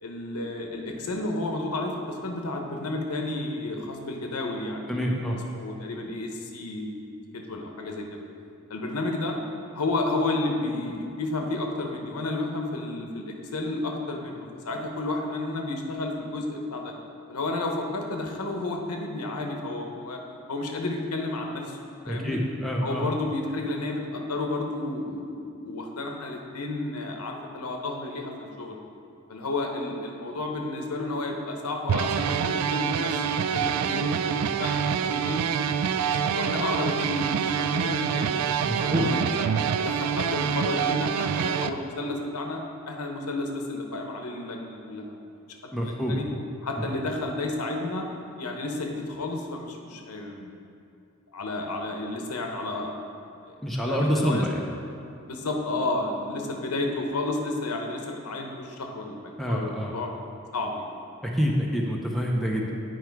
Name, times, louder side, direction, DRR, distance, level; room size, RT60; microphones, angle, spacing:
voice 1, 0.0-5.2 5.5-7.0 7.3-8.2 8.7-9.4 9.7-16.9 17.3-20.2 20.5-21.8 22.0-22.4 22.8-28.8 29.3-35.4 35.9-38.5 38.8-39.5 39.8-42.6 42.9-45.1 45.6-46.2 46.6-48.1 48.4-50.5 51.3-53.0 53.4-53.6 53.9-54.4 55.2-60.1 60.5-60.9, left 2 dB, 85° left, 2 dB, 0.9 m, -31 dB
voice 2, 4.9-5.4 22.1-23.1 38.7-39.1 45.7-46.2 46.8-46.9 53.6-54.6 59.4-59.9 61.2-62.7, equal, ahead, -2 dB, 0.6 m, -26 dB
sound 1, 31.9-41.7, right 7 dB, 85° right, 0.3 m, -26 dB
9.4 x 4.6 x 4.6 m, 2.5 s
head